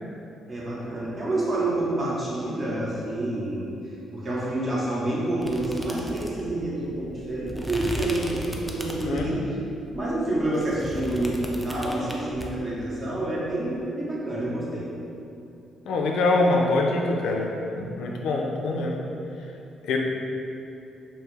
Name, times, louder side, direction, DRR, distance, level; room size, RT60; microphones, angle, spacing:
voice 1, 0.5-9.6 9.9-14.9, right 1 dB, 35° right, -6 dB, 0.8 m, -28 dB
sound 1, 5.4-9.4 9.9-12.5, equal, 5° right, 0.3 m, -35 dB
voice 2, 15.9-19.0 19.8-20.0, left 2 dB, 80° left, 0 dB, 0.3 m, -24 dB
2.6 x 2.4 x 3.1 m, 2.7 s
cardioid pair, 90°, 0 cm